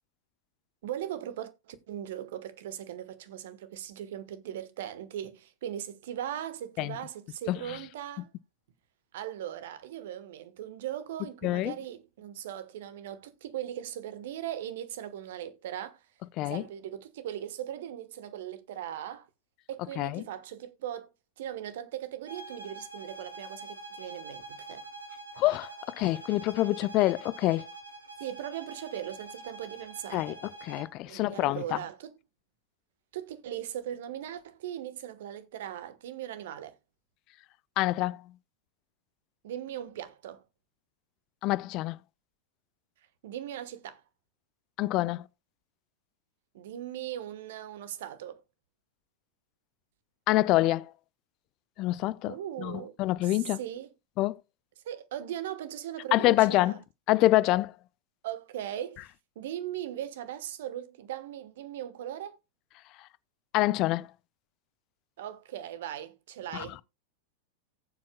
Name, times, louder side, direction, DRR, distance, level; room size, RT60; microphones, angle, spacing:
voice 1, 0.8-8.3 9.1-16.0 16.4-19.3 19.7-21.1 21.4-24.8 28.2-30.4 31.1-32.1 33.1-36.8 39.4-40.4 43.2-44.0 46.5-48.4 52.3-52.9 53.2-53.9 54.8-56.8 58.2-59.1 59.3-62.4 65.2-66.8, right 11 dB, 55° right, 1.3 m, -39 dB
voice 2, 11.4-11.7 16.4-16.6 20.0-20.2 25.4-27.7 30.1-30.4 30.6-31.8 37.8-38.2 41.4-42.0 44.8-45.2 50.3-50.9 51.8-53.6 54.2-54.4 56.1-56.7 57.1-57.7 63.5-64.1 66.5-66.6, left 17 dB, 40° left, 0.5 m, -26 dB
sound 1, 22.3-31.0, right 3 dB, 80° right, 2.4 m, -45 dB
18.0 x 7.4 x 2.2 m
figure-of-eight pair, 90°, 0 cm